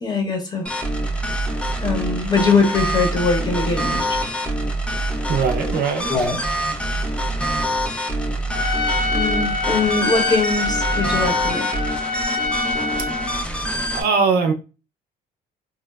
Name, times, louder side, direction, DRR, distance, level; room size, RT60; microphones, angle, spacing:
voice 1, 0.0-0.7 1.8-4.3 6.1-6.4 9.1-11.9, left 4 dB, 25° left, 0.8 m, -22 dB
sound 1, 0.7-14.0, right 1 dB, 5° left, 0.3 m, -25 dB
voice 2, 5.3-6.1 13.9-14.5, right 5 dB, 65° right, 0.5 m, -20 dB
Trumpet, 8.5-13.4, left 2 dB, 65° left, 0.6 m, -25 dB
2.9 x 2.0 x 2.2 m
cardioid pair, 110°, 17 cm